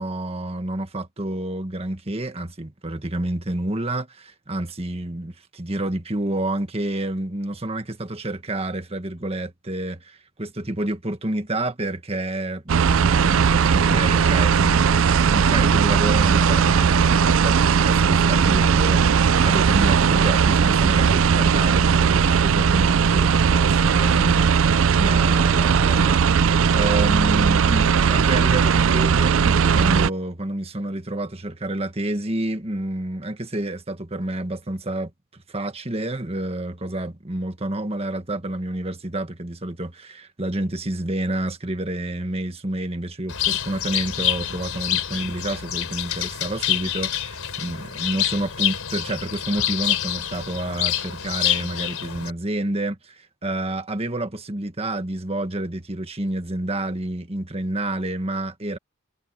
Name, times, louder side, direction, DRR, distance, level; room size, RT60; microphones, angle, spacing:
voice 1, 0.0-14.9 15.3-24.5 25.0-58.8, right 1 dB, 30° right, 1.6 m, -29 dB
sound 1, 12.7-30.1, right 6 dB, 65° right, 0.4 m, -18 dB
Bird, 43.3-52.3, left 11 dB, 80° left, 3.9 m, -27 dB
head